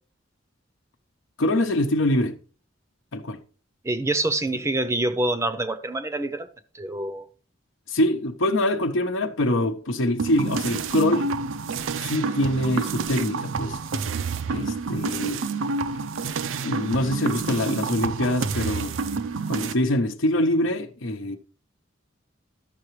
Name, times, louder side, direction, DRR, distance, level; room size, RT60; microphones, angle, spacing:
voice 1, 1.4-2.4 3.1-3.4 7.9-11.3 12.0-13.8 14.5-15.4 16.6-18.9 19.5-21.4, left 1 dB, 75° left, 0.8 m, -24 dB
voice 2, 3.8-6.5 6.7-7.3, right 2 dB, 15° right, 0.6 m, -26 dB
sound 1, 10.2-19.7, right 4 dB, 80° right, 0.5 m, -28 dB
13.0 x 5.8 x 3.1 m
head